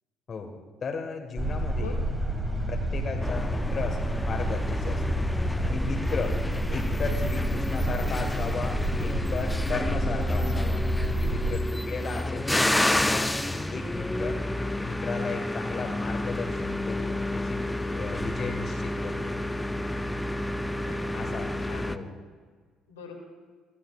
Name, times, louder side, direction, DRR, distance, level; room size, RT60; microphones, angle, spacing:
voice 1, 0.8-2.0 2.7-5.3 5.6-6.4 6.7-10.8 11.2-14.4 14.8-17.7 17.9-19.4 21.1-21.6 21.8-22.1, left 4 dB, 40° left, 3 dB, 1.7 m, -35 dB
sound 1, 1.4-11.6, right 1 dB, 10° right, 1.7 m, -29 dB
voice 2, 3.1-3.4 7.8-8.1 20.7-21.3 21.7-22.0 22.9-23.1, left 5 dB, 80° left, 0 dB, 2.5 m, -44 dB
sound 2, 3.2-22.0, left 1 dB, 10° left, 0.7 m, -30 dB
23.0 x 15.0 x 2.5 m, 1.5 s
figure-of-eight pair, 50°, 0 cm